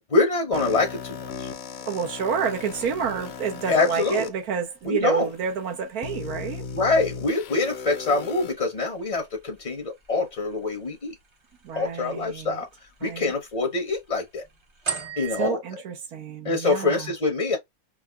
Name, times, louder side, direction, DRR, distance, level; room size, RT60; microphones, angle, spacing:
voice 1, 0.1-1.5 3.7-4.3 4.8-5.3 6.7-11.1 11.7-12.7 13.0-14.4 15.2-15.6 16.4-17.6, left 3 dB, 35° left, 0.7 m, -25 dB
sound 1, 0.5-4.3 5.0-5.1 6.0-8.5, left 6 dB, 70° left, 1.0 m, -37 dB
voice 2, 1.9-6.7 11.6-12.6 13.0-13.3 15.4-17.1, right 6 dB, 85° right, 1.4 m, -29 dB
sound 2, 2.5-15.5, right 5 dB, 35° right, 0.4 m, -43 dB
4.7 x 2.1 x 2.2 m
omnidirectional pair, 1.6 m